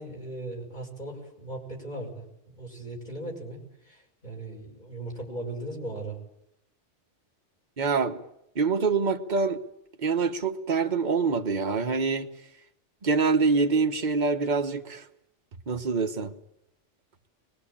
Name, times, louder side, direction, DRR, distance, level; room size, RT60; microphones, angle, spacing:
voice 1, 0.0-2.2 2.5-6.2, right 2 dB, 40° left, 6.3 m, -38 dB
voice 2, 7.8-8.2 8.5-9.6 10.0-12.3 13.0-15.0 15.7-16.3, right 4 dB, 40° right, 1.4 m, -25 dB
23.5 x 21.5 x 8.8 m
omnidirectional pair, 1.2 m